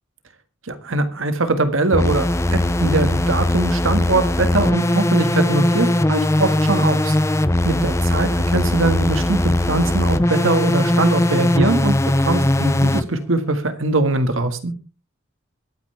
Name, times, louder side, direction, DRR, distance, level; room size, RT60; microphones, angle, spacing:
voice 1, 0.7-2.2 2.5-7.4 7.6-14.7, right 2 dB, 80° right, 9 dB, 1.8 m, -21 dB
sound 1, 1.9-13.0, left 1 dB, 15° left, 0.6 m, -19 dB
22.5 x 9.3 x 3.4 m, 0.32 s
head